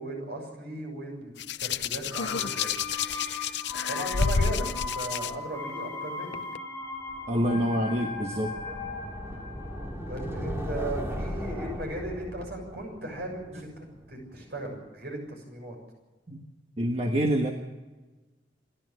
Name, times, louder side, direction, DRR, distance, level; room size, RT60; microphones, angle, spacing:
voice 1, 0.0-2.8 3.9-6.4 10.1-15.8, right 1 dB, 60° right, 2 dB, 6.9 m, -37 dB
Hands, 1.4-5.3 6.3-6.6, left 5 dB, 75° left, 0.7 m, -29 dB
sound 1, 2.1-11.8 12.1-12.2, left 3 dB, 10° left, 6.5 m, -38 dB
sound 2, 7.1-14.1, equal, 15° right, 2.6 m, -37 dB
voice 2, 7.3-8.6 16.3-16.4 16.8-17.5, equal, 35° right, 3 dB, 1.4 m, -26 dB
28.0 x 12.0 x 7.8 m, 1.2 s
head